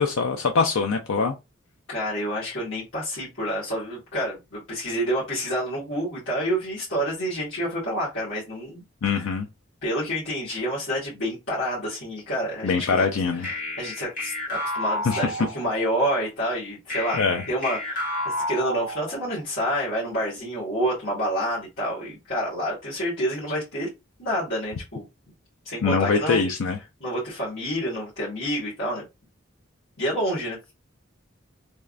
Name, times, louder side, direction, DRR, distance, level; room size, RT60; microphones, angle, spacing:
voice 1, 0.0-1.3 9.0-9.5 12.6-13.5 15.1-15.2 17.1-17.4 25.8-26.8, left 5 dB, 85° left, 0.5 m, -23 dB
voice 2, 1.9-8.8 9.1-9.3 9.8-13.1 13.4-17.2 17.5-23.9 24.2-25.0 25.6-26.4 27.0-29.1 30.0-30.6, equal, 65° left, 1.8 m, -28 dB
sound 1, 13.4-15.9 16.9-19.4, left 1 dB, 40° left, 1.3 m, -31 dB
3.5 x 3.2 x 2.5 m
head